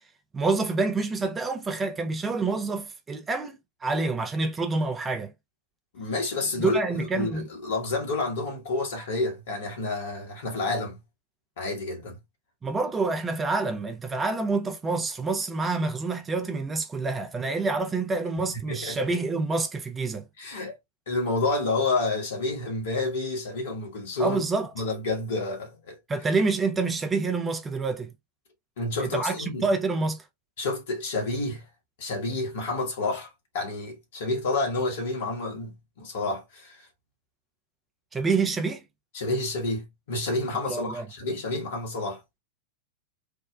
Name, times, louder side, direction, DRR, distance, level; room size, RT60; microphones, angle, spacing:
voice 1, 0.3-5.3 6.6-7.5 12.6-20.3 24.2-24.7 26.1-28.1 29.0-30.2 38.1-38.8 40.7-41.1, right 3 dB, 15° right, 0.5 m, -27 dB
voice 2, 5.9-11.0 11.6-12.2 18.7-19.0 20.4-20.8 21.1-24.4 24.8-26.0 28.8-29.7 30.6-31.6 32.0-36.8 39.1-42.2, left 2 dB, 60° left, 1.3 m, -29 dB
3.5 x 2.1 x 2.2 m
figure-of-eight pair, 90°, 0 cm